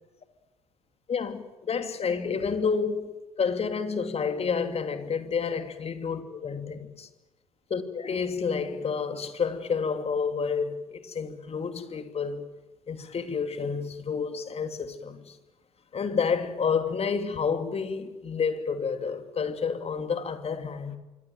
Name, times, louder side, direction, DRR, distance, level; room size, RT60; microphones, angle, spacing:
voice 1, 1.1-7.1 7.7-12.5 12.9-15.4 15.9-21.0, left 5 dB, 35° left, 2.8 m, -29 dB
26.0 x 22.0 x 9.1 m
figure-of-eight pair, 55°, 18 cm